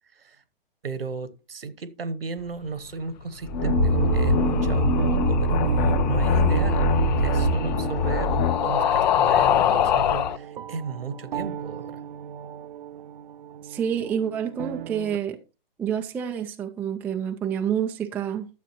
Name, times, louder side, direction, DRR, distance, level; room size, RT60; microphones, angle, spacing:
voice 1, 0.1-0.4 0.8-12.0, right 5 dB, 80° right, 1.3 m, -35 dB
sound 1, 3.4-8.7, left 6 dB, 35° left, 1.2 m, -24 dB
sound 2, 3.6-15.2, right 7 dB, 60° right, 0.5 m, -29 dB
sound 3, 3.7-10.4, left 10 dB, 50° left, 0.6 m, -26 dB
voice 2, 13.6-15.4 15.8-18.5, right 8 dB, 5° right, 0.4 m, -28 dB
12.0 x 7.4 x 3.0 m
figure-of-eight pair, 115°, 29 cm